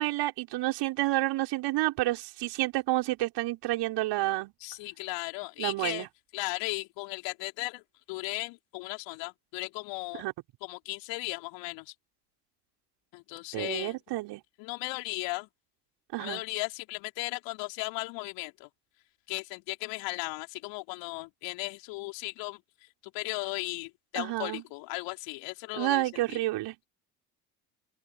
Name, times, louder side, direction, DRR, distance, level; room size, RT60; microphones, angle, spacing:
voice 1, 0.0-4.5 5.6-6.1 10.2-10.3 13.5-14.4 16.1-16.4 24.2-24.6 25.8-26.8, right 17 dB, 65° right, 6.1 m, -29 dB
voice 2, 4.6-6.1 6.3-7.8 8.1-10.2 10.6-11.9 13.1-14.0 14.6-15.5 16.2-18.7 19.3-26.4, left 25 dB, 65° left, 5.2 m, -36 dB
open air
hypercardioid pair, 55°, 45 cm